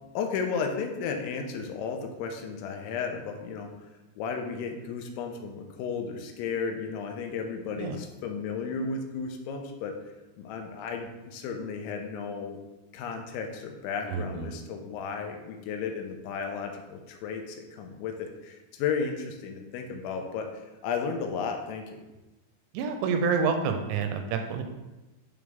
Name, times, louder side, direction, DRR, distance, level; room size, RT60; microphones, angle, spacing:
voice 1, 0.1-3.7 4.2-10.0 10.4-12.6 12.9-20.5 20.8-22.0, left 5 dB, 90° left, 4 dB, 3.1 m, -34 dB
voice 2, 14.1-14.5 22.7-24.6, right 5 dB, 85° right, 5 dB, 2.8 m, -28 dB
10.5 x 3.6 x 3.5 m, 1.1 s
omnidirectional pair, 5.3 m